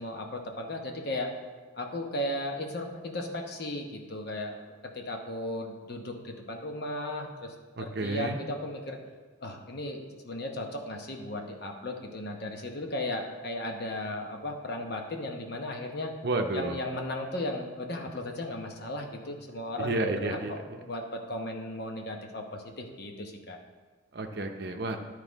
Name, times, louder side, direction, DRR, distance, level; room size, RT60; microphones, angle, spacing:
voice 1, 0.0-1.3 1.7-9.0 9.4-16.1 16.5-23.6, left 1 dB, 50° left, 2 dB, 0.9 m, -36 dB
voice 2, 7.8-8.4 16.2-16.8 19.8-20.8 24.1-25.0, right 2 dB, 50° right, 5 dB, 0.7 m, -31 dB
11.0 x 4.9 x 4.0 m, 1.4 s
head